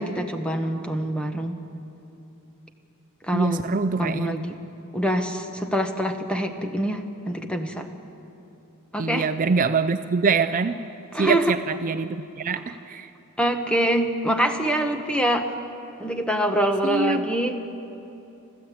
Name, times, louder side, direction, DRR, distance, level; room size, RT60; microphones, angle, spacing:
voice 1, 0.0-1.6 3.3-3.7 4.0-4.6 4.9-7.9 8.9-9.3 11.1-11.6 13.4-15.5 16.0-17.6, right 1 dB, 5° left, 5 dB, 1.3 m, -25 dB
voice 2, 3.3-4.4 9.0-10.8 11.2-13.1 16.8-17.2, right 4 dB, 35° right, 10 dB, 0.5 m, -24 dB
27.0 x 15.0 x 8.6 m, 2.9 s
head